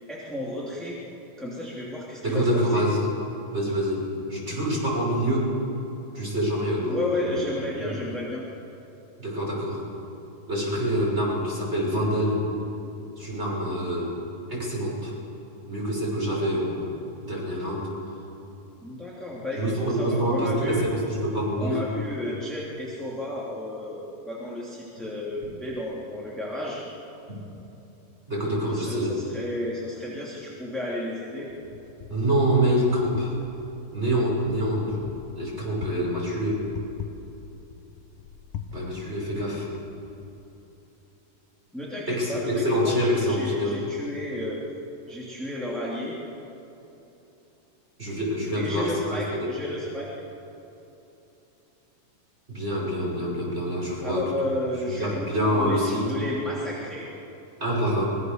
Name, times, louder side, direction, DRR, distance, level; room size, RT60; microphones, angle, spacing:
voice 1, 0.1-1.0 1.4-2.9 6.9-8.5 18.8-20.8 21.6-26.8 28.7-31.5 41.7-44.6 45.1-46.2 48.5-50.1 54.0-57.1, left 1 dB, ahead, -6 dB, 2.5 m, -33 dB
voice 2, 2.2-3.1 3.5-5.5 6.1-7.3 7.8-7.9 9.2-9.8 10.5-12.4 13.2-14.1 14.5-15.1 15.7-16.9 17.2-17.9 19.6-21.8 27.3-27.4 28.3-29.2 32.1-33.3 33.9-35.0 35.4-36.6 38.7-39.7 42.1-43.8 48.0-49.5 52.5-54.3 54.9-56.1 57.6-58.1, equal, 15° right, -4 dB, 6.2 m, -26 dB
Wind, 31.5-40.4, left 7 dB, 70° left, 2.4 m, -43 dB
24.5 x 21.5 x 6.8 m, 3.0 s
omnidirectional pair, 4.0 m